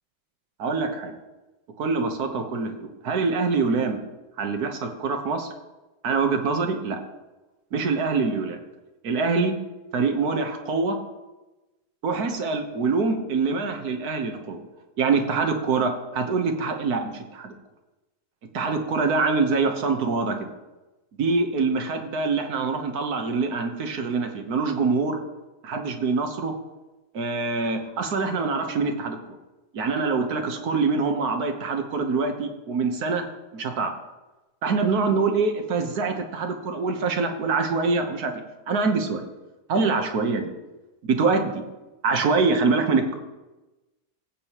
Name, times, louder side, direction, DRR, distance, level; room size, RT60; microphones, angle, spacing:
voice 1, 0.6-1.1 1.8-4.0 4.4-5.5 6.0-7.0 7.7-8.6 9.0-9.5 9.9-11.0 12.0-14.6 15.0-17.5 18.5-20.5 21.2-25.2 25.6-26.5 27.1-29.2 29.7-33.3 33.5-33.9 34.6-38.3 38.7-39.3 39.7-40.5 41.1-41.6 42.0-43.2, right 4 dB, 80° right, 5 dB, 1.6 m, -24 dB
15.5 x 8.2 x 3.0 m, 1.1 s
omnidirectional pair, 1.6 m